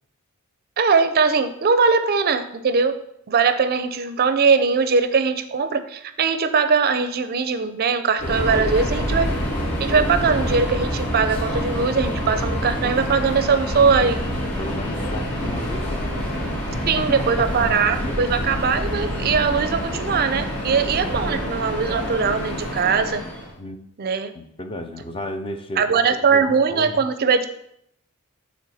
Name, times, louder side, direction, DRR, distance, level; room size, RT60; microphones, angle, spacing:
voice 1, 0.8-3.0 3.3-9.3 9.8-14.2 16.9-23.2 24.0-24.3 25.8-27.5, right 5 dB, 45° right, 11 dB, 0.4 m, -20 dB
Subway metro underground, 8.2-23.5, equal, 85° left, 2.3 m, -27 dB
voice 2, 14.6-16.3 16.7-17.7 18.0-18.2 23.6-23.8 24.3-27.1, left 1 dB, 25° left, 7 dB, 0.5 m, -33 dB
9.1 x 3.4 x 4.1 m, 0.74 s
head